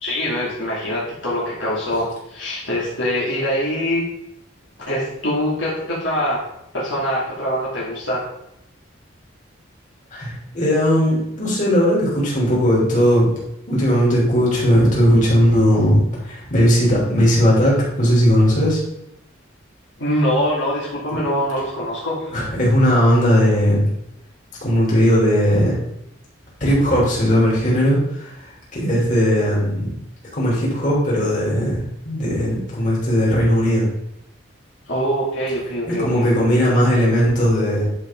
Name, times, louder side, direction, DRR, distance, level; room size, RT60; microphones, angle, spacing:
voice 1, 0.0-4.0 4.8-6.5 6.7-8.2 20.0-22.2 34.9-36.3, equal, 70° left, -6 dB, 2.5 m, -23 dB
voice 2, 10.1-13.3 13.7-18.8 22.3-23.9 24.6-25.8 26.6-29.9 30.3-33.8 36.0-37.8, equal, 40° left, -6 dB, 3.4 m, -17 dB
10.5 x 5.4 x 3.8 m, 0.79 s
head